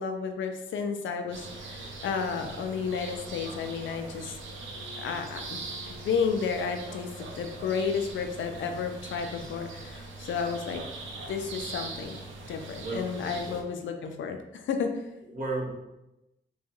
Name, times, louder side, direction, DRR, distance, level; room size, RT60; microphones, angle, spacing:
voice 1, 0.0-4.4 5.0-5.6 5.9-10.8 11.3-12.2 12.5-14.9, left 6 dB, 90° left, 5 dB, 0.4 m, -32 dB
sound 1, 1.3-13.6, right 3 dB, 90° right, 0.5 m, -41 dB
Wind instrument woodwind instrument, 4.7-9.4, left 4 dB, 30° left, 0.7 m, -54 dB
voice 2, 15.2-15.7, right 2 dB, 45° right, -3 dB, 1.0 m, -33 dB
3.8 x 2.3 x 2.8 m, 0.92 s
cardioid pair, 90°, 19 cm